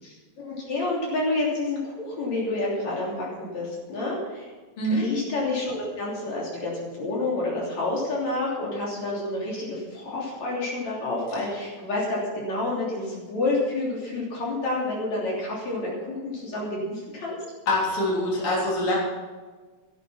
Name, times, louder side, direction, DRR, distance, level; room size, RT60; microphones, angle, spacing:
voice 1, 0.0-4.5 4.9-17.4, left 2 dB, 60° left, -5 dB, 4.5 m, -29 dB
voice 2, 17.7-19.0, left 1 dB, 45° left, -4 dB, 4.3 m, -24 dB
13.5 x 11.5 x 5.8 m, 1.4 s
omnidirectional pair, 3.6 m